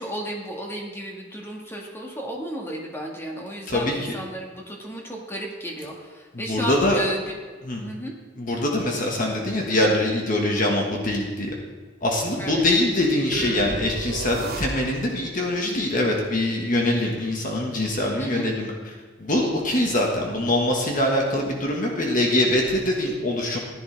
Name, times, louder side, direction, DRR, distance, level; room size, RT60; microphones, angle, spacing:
voice 1, 0.0-7.2 7.8-8.2 12.4-12.6 18.2-18.5, equal, 15° left, -1 dB, 1.8 m, -33 dB
voice 2, 6.3-7.0 7.6-7.8 8.4-11.5 12.0-18.7 19.2-23.6, left 1 dB, 45° left, 0 dB, 1.6 m, -23 dB
sound 1, 13.3-15.2, right 2 dB, 55° right, 1.1 m, -32 dB
15.0 x 10.5 x 3.5 m, 1.5 s
head